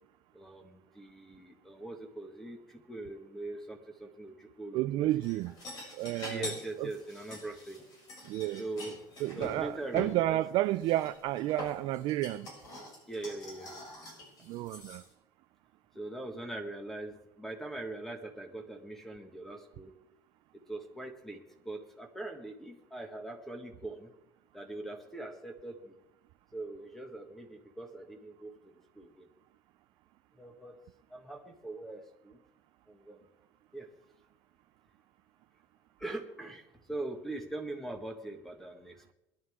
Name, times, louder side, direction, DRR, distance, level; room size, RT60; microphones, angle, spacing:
voice 1, 0.3-5.1 6.3-7.8 8.6-10.4 13.1-13.7 14.8-14.9 15.9-19.9 20.7-24.1 24.5-26.0 26.5-29.3 30.3-30.8 31.1-32.4 32.9-33.3 33.7-33.9 36.0-39.1, right 2 dB, 5° left, 1.7 m, -42 dB
voice 2, 4.7-5.5 5.9-6.5 6.8-6.9 8.2-8.6 9.2-12.5 14.5-15.0, right 15 dB, 55° right, 0.4 m, -31 dB
sound 1, 5.2-10.1 10.8-15.1, left 1 dB, 45° left, 7.0 m, -45 dB
21.5 x 11.5 x 3.7 m
cardioid pair, 155°, 9 cm